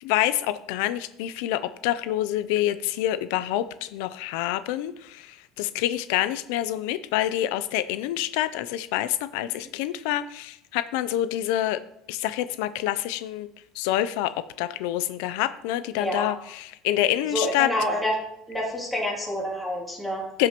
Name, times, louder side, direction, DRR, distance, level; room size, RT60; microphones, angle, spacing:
voice 1, 0.0-11.8 12.1-13.5 13.8-17.7 20.4-20.5, left 13 dB, 80° left, 13 dB, 0.4 m, -27 dB
voice 2, 16.0-16.3 17.3-18.1 18.5-20.2, left 1 dB, 5° left, -4 dB, 2.7 m, -28 dB
16.0 x 6.0 x 2.9 m, 0.79 s
cardioid pair, 165°, 0 cm